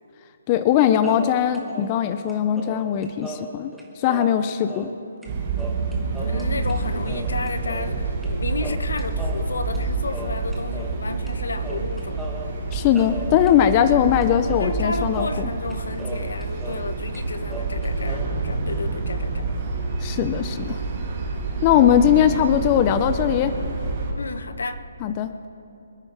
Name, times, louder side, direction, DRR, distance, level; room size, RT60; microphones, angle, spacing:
voice 1, 0.5-3.7 4.0-4.9 12.7-15.5 20.0-20.8 21.6-23.5 25.0-25.5, left 10 dB, 20° left, 0.5 m, -20 dB
sound 1, 1.0-5.0 5.2-5.3 5.6-6.8 7.0-8.3 8.6-11.0 11.3-11.4 11.6-16.9 17.1-18.2, right 2 dB, ahead, 1.1 m, -38 dB
sound 2, 5.3-24.1, right 3 dB, 25° right, 3.9 m, -28 dB
voice 2, 6.2-12.6 14.6-19.5 24.2-24.8, left 3 dB, 85° left, 1.1 m, -32 dB
25.5 x 9.6 x 4.9 m
hypercardioid pair, 170°, 0 cm